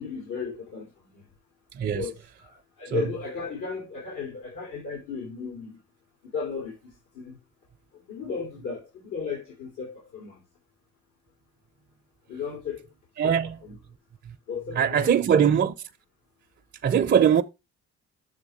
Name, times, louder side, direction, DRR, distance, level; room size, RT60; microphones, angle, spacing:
voice 1, 0.0-1.3 1.9-5.8 6.2-7.4 7.9-10.4 12.3-12.9 13.2-13.8 14.5-15.5, left 6 dB, 85° left, 2.9 m, -35 dB
voice 2, 1.7-2.1 2.9-3.0 13.2-13.6 14.8-15.7 16.8-17.4, right 8 dB, 35° right, 0.5 m, -21 dB
7.3 x 3.3 x 6.3 m
cardioid pair, 90°, 30 cm